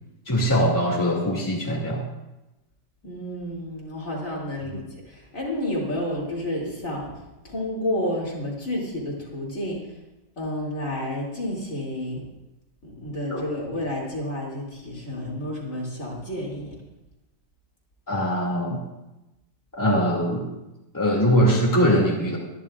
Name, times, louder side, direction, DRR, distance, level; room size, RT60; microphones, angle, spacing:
voice 1, 0.3-2.0 4.7-4.8 13.3-13.4 18.1-18.8 19.8-20.5 20.9-22.4, equal, 10° left, -3 dB, 2.4 m, -22 dB
voice 2, 3.0-7.1 7.4-9.8 10.4-12.2 12.8-16.7, left 1 dB, 45° left, -4 dB, 3.2 m, -30 dB
24.0 x 10.5 x 2.5 m, 0.99 s
omnidirectional pair, 1.9 m